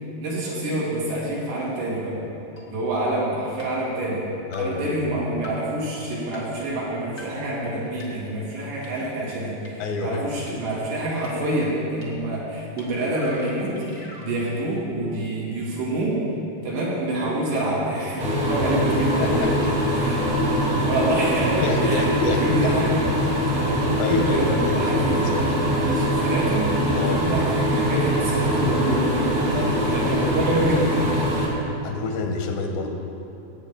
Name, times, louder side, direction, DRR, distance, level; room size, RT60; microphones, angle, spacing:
voice 1, 0.2-2.2 2.7-4.2 4.6-16.2 16.6-20.2 20.9-22.9 23.9-25.3 25.8-29.3 29.9-31.1, right 1 dB, 80° right, -7 dB, 4.8 m, -27 dB
sound 1, 2.6-2.7 3.6-3.7 4.5-4.6 5.4-5.5 6.3-6.4 7.2-7.3 8.0-8.1 8.8-8.9 9.6-9.7 10.5-10.6 11.2-11.3 12.0-12.1 12.8-12.9 13.1-14.3, left 2 dB, 55° left, 0.8 m, -42 dB
voice 2, 4.5-5.0 9.8-10.2 19.2-19.5 21.6-22.7 24.0-25.5 26.9-27.3 29.5-30.0 31.8-32.9, left 4 dB, 85° left, 3 dB, 3.0 m, -28 dB
sound 2, 18.2-31.5, equal, 60° right, 0.9 m, -22 dB
17.5 x 8.9 x 3.8 m, 2.8 s
omnidirectional pair, 4.9 m